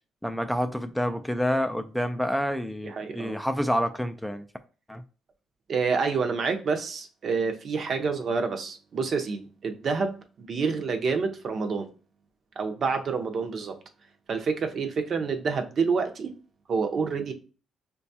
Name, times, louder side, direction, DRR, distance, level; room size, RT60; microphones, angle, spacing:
voice 1, 0.2-4.5 4.9-5.0, equal, ahead, 0.3 m, -28 dB
voice 2, 2.8-3.4 5.7-11.9 12.6-13.8 14.3-16.3 16.7-17.3, right 5 dB, 55° right, 0.6 m, -28 dB
5.7 x 2.3 x 2.7 m
cardioid pair, 90°, 0 cm